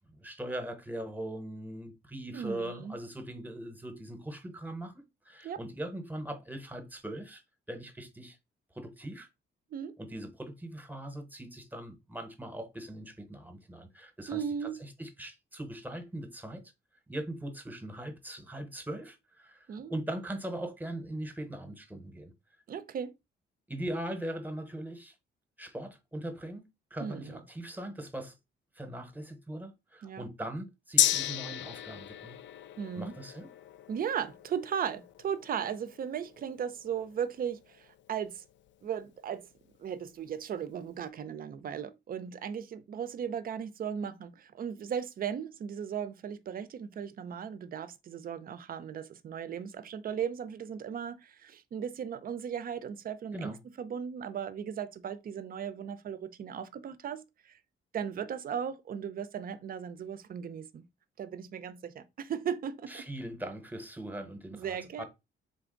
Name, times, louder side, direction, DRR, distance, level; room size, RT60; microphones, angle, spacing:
voice 1, 0.0-7.4 7.7-8.4 8.7-9.3 10.0-16.6 17.1-22.3 23.7-25.1 25.6-26.6 26.9-28.3 28.8-32.4 33.0-33.5 53.3-53.6 62.9-65.0, right 1 dB, 10° right, 0.9 m, -40 dB
voice 2, 2.3-3.0 5.4-5.6 9.7-10.0 14.3-14.8 19.7-19.9 22.7-23.1 27.0-27.4 30.0-30.2 32.8-33.1 33.9-38.4 38.8-39.4 39.8-57.2 57.9-60.8 61.2-63.1 64.5-65.0, right 8 dB, 45° right, 0.5 m, -37 dB
Gong, 31.0-38.7 39.1-39.2, left 11 dB, 65° left, 0.4 m, -35 dB
3.9 x 3.5 x 3.8 m
cardioid pair, 130°, 20 cm